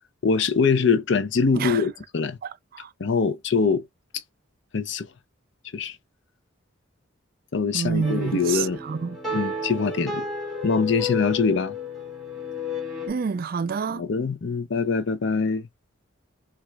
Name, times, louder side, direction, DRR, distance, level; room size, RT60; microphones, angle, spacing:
voice 1, 0.2-2.4 3.0-3.8 4.7-5.1 5.7-6.0 7.5-8.8 9.3-10.2 10.6-11.8 13.9-15.7, left 5 dB, 60° left, 0.5 m, -23 dB
voice 2, 2.4-2.9 7.7-9.2 13.1-14.0, right 5 dB, 45° right, 0.3 m, -28 dB
sound 1, 8.0-13.1, left 3 dB, ahead, 1.5 m, -32 dB
5.8 x 2.4 x 2.2 m
head